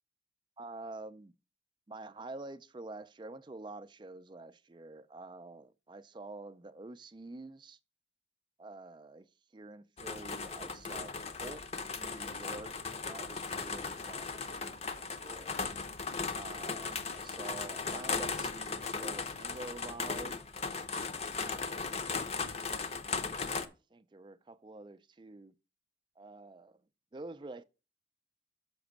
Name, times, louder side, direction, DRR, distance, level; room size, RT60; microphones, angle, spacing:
voice 1, 0.6-1.3 1.9-7.8 8.6-9.3 9.5-11.6 11.9-12.7 13.0-15.6 16.3-20.4 21.4-22.5 23.6-25.5 26.2-26.8 27.1-27.6, right 2 dB, 25° right, 0.4 m, -48 dB
sound 1, 10.0-23.7, left 4 dB, 35° left, 0.7 m, -37 dB
6.0 x 5.9 x 6.5 m
head